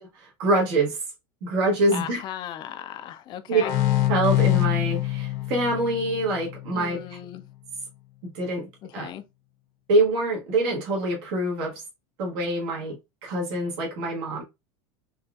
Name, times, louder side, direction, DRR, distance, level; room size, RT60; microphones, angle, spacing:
voice 1, 0.4-1.0 1.4-2.2 3.5-3.6 4.1-7.0 8.3-8.7 8.9-9.1 9.9-11.8 12.2-12.9 13.2-14.4, right 2 dB, 65° right, 1.3 m, -25 dB
voice 2, 1.9-3.7 6.7-7.4 8.8-9.2, left 11 dB, 35° left, 0.4 m, -37 dB
sound 1, 3.6-7.1, left 15 dB, 60° left, 0.8 m, -25 dB
4.0 x 2.4 x 2.3 m
supercardioid pair, 150°, 14 cm